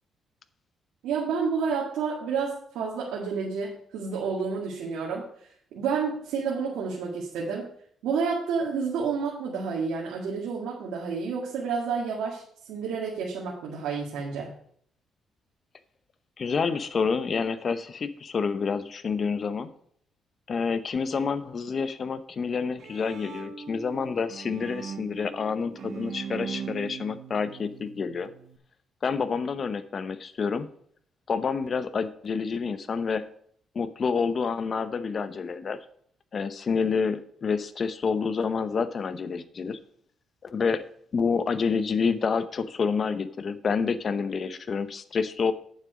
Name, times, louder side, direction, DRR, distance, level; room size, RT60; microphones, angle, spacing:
voice 1, 1.0-5.3 5.7-7.7 8.0-12.4 12.7-14.5, right 5 dB, 90° right, -4 dB, 2.0 m, -30 dB
voice 2, 16.4-19.7 20.5-28.3 29.0-30.7 31.3-33.2 33.7-35.8 36.3-39.8 40.5-40.8 41.1-45.5, left 5 dB, 45° left, 13 dB, 0.8 m, -28 dB
Bowed string instrument, 22.5-28.6, right 7 dB, 65° right, 1.1 m, -40 dB
8.9 x 7.4 x 5.1 m, 0.63 s
cardioid pair, 90°, 0 cm